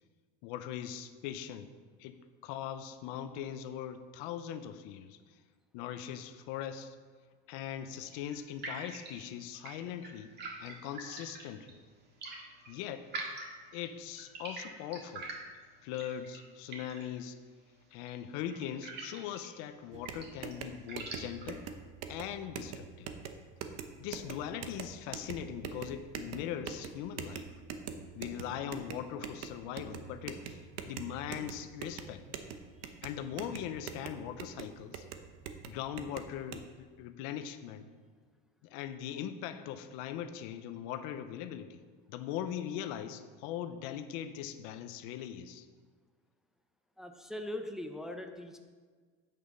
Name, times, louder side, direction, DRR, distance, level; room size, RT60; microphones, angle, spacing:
voice 1, 0.4-1.7 2.0-5.2 5.7-7.0 7.5-10.3 10.6-11.8 12.7-13.1 13.7-15.3 15.8-17.4 17.9-21.7 22.1-23.1 24.0-27.5 28.1-32.2 33.0-35.0 35.7-37.9 38.6-41.8 42.1-45.7, left 10 dB, 85° left, 10 dB, 0.8 m, -40 dB
sound 1, 7.8-21.7, right 3 dB, 35° right, 1.8 m, -47 dB
sound 2, 19.9-36.6, right 7 dB, 60° right, 0.8 m, -44 dB
voice 2, 47.0-48.6, left 1 dB, ahead, 4 dB, 0.5 m, -41 dB
8.6 x 6.8 x 5.4 m, 1.5 s
cardioid pair, 150°, 30 cm